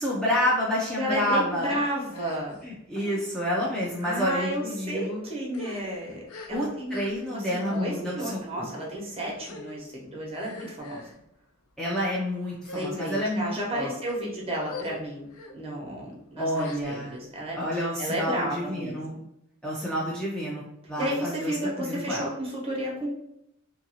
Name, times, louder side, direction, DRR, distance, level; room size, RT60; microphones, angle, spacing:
voice 1, 0.0-1.7 2.6-5.2 6.5-8.7 11.8-13.9 16.4-17.1 17.5-19.1 19.6-21.5 21.8-22.3, equal, 5° left, -6 dB, 0.4 m, -29 dB
voice 2, 1.0-2.6 4.0-7.0 7.3-11.1 12.7-15.3 15.5-19.2 20.9-23.1, equal, 30° right, -3 dB, 0.9 m, -32 dB
sound 1, 1.2-1.4 2.1-2.6 2.9-3.2 3.9-4.2 4.9-5.1 5.4-7.4 7.6-7.9 8.7-9.0 9.4-9.8 10.3-11.2 11.8-12.1 12.6-13.3 13.9-14.1 14.6-15.0 15.3-15.5 16.5-17.2, left 3 dB, 80° left, 0.5 m, -43 dB
2.7 x 2.6 x 2.8 m, 0.80 s
head